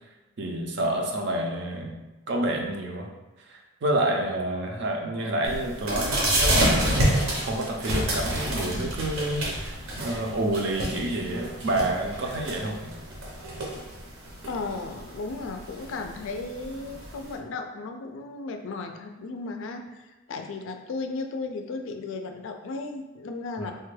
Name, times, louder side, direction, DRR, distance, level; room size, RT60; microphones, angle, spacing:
voice 1, 0.4-2.0 2.3-3.1 3.5-12.8 23.6-23.7, right 1 dB, 55° right, 1 dB, 0.4 m, -29 dB
sound 1, 5.4-17.3, right 1 dB, 80° right, 0.8 m, -29 dB
voice 2, 14.5-23.7, left 3 dB, 65° left, 5 dB, 0.3 m, -35 dB
3.2 x 2.2 x 3.2 m, 1.1 s
head